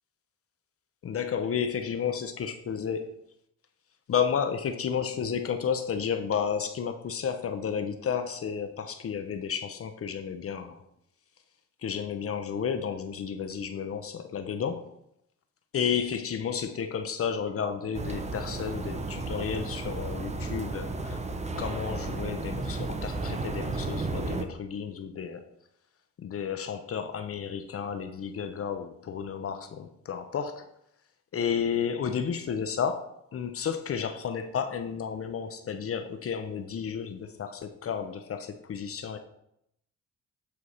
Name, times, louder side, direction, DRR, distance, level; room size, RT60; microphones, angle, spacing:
voice 1, 1.0-3.1 4.1-10.8 11.8-14.9 15.7-21.2 21.6-25.5 26.2-30.7 31.3-33.0 33.3-39.2, left 7 dB, 50° left, 8 dB, 0.8 m, -32 dB
sound 1, 17.9-24.4, right 3 dB, 20° right, 1.0 m, -33 dB
8.6 x 4.6 x 5.6 m, 0.76 s
cardioid pair, 90°, 30 cm